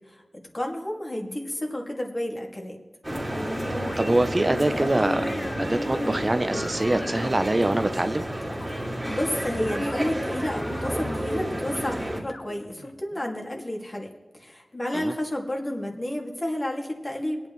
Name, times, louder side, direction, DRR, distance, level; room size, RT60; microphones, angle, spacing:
voice 1, 0.5-2.8 9.1-14.1 14.3-17.4, left 1 dB, 35° left, 1 dB, 2.2 m, -31 dB
sound 1, 3.0-12.2, equal, 10° right, 2.5 m, -30 dB
sound 2, 3.7-4.1 4.8-7.9 8.5-8.9 9.8-11.2 12.3-13.7, left 2 dB, 55° left, 0.9 m, -43 dB
voice 2, 3.8-5.3 5.6-8.2 14.9-15.1, right 1 dB, 35° right, 9 dB, 0.6 m, -24 dB
22.0 x 8.8 x 3.1 m, 1.4 s
wide cardioid pair, 60°, 0 cm